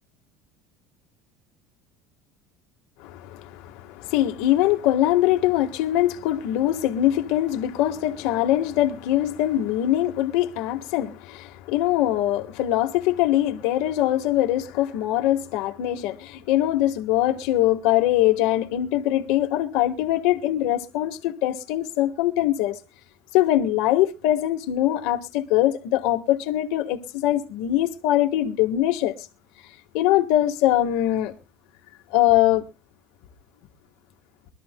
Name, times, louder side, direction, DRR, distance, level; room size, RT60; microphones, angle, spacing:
voice 1, 3.0-22.7 23.3-29.2 29.9-31.3 32.1-32.6, left 13 dB, 60° left, 1.5 m, -22 dB
23.5 x 13.0 x 2.2 m
cardioid pair, 175°, 0 cm